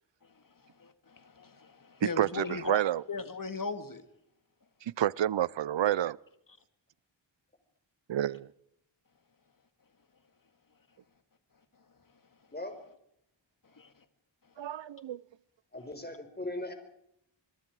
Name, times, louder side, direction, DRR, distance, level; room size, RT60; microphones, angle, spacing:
voice 1, 0.8-2.8 3.1-4.0 13.8-13.9, left 4 dB, 45° left, 2.2 m, -38 dB
voice 2, 2.0-3.0 4.8-6.2 8.1-8.5 14.6-15.2, right 11 dB, 70° right, 0.7 m, -29 dB
voice 3, 15.7-16.7, left 1 dB, 20° left, 4.7 m, -38 dB
26.5 x 21.5 x 4.8 m
wide cardioid pair, 90°, 46 cm